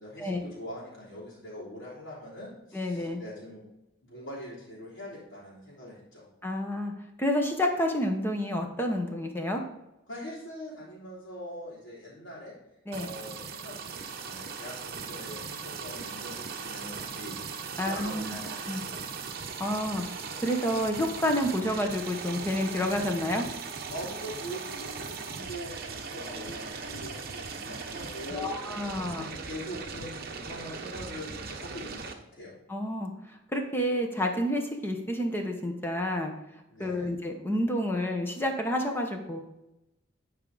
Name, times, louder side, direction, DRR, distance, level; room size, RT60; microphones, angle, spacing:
voice 1, 0.0-3.6 4.0-6.3 10.1-12.5 13.0-17.5 17.8-19.0 23.9-28.6 29.1-32.6 36.7-37.1, equal, 65° left, -9 dB, 3.3 m, -43 dB
voice 2, 2.7-3.2 6.4-6.9 7.2-9.6 12.9-13.1 17.8-18.4 18.7-18.8 19.6-20.0 20.4-23.5 28.3-29.3 32.7-36.3 36.8-39.4, equal, 10° left, 3 dB, 1.0 m, -29 dB
sound 1, 12.9-32.1, right 5 dB, 50° right, 0.9 m, -39 dB
11.0 x 4.9 x 4.0 m, 0.92 s
head